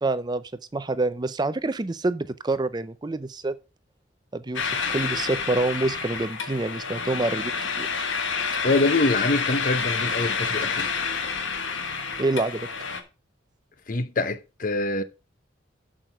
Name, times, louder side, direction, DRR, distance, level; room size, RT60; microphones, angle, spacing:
voice 1, 0.0-0.4 0.7-3.5 4.3-7.5 7.8-7.9 12.2-12.7, right 2 dB, 20° right, 0.4 m, -27 dB
sound 1, 4.5-13.0, left 5 dB, 80° left, 1.3 m, -29 dB
voice 2, 8.6-10.9 13.9-15.0, left 2 dB, 45° left, 0.7 m, -24 dB
7.7 x 6.4 x 5.4 m
head